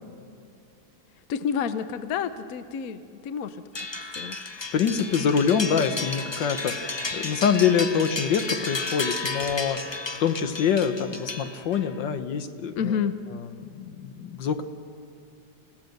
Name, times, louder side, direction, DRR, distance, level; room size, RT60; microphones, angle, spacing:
voice 1, 1.3-3.6 4.2-4.4 12.7-13.2, left 7 dB, 60° left, 11 dB, 1.1 m, -29 dB
sound 1, 3.7-11.9, left 3 dB, 45° left, 0.3 m, -33 dB
voice 2, 4.6-12.7 13.3-14.6, left 7 dB, 75° left, 9 dB, 1.7 m, -25 dB
29.0 x 16.0 x 6.6 m, 2.4 s
omnidirectional pair, 2.0 m